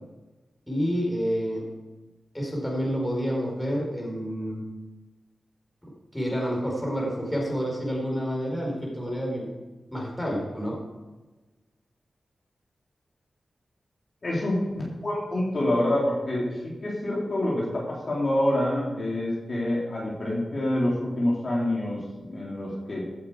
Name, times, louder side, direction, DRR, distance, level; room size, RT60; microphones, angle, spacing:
voice 1, 0.7-1.7 2.3-4.7 6.1-9.5 9.9-10.8, equal, 10° left, -2 dB, 4.9 m, -29 dB
voice 2, 14.2-23.0, left 1 dB, 45° left, -5 dB, 3.8 m, -27 dB
16.0 x 8.6 x 4.9 m, 1.2 s
wide cardioid pair, 90°, 0 cm